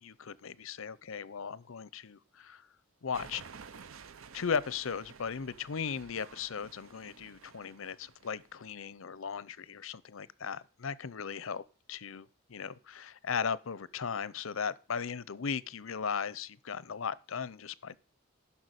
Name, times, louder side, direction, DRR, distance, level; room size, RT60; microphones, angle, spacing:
voice 1, 0.0-2.7 3.0-3.4 4.3-11.6 11.9-18.0, left 6 dB, 80° left, 0.6 m, -37 dB
sound 1, 3.1-8.7, right 5 dB, 80° right, 0.7 m, -52 dB
11.5 x 5.8 x 8.0 m
head